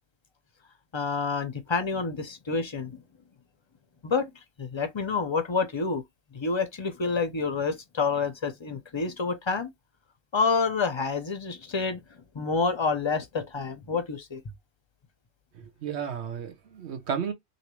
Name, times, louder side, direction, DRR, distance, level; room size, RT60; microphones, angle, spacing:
voice 1, 0.9-3.0 4.0-4.3 4.6-6.0 6.3-9.7 10.3-12.0 12.3-14.4, left 4 dB, 40° left, 0.4 m, -28 dB
voice 2, 15.6-17.3, right 7 dB, 85° right, 1.1 m, -33 dB
3.1 x 2.7 x 3.0 m
omnidirectional pair, 1.1 m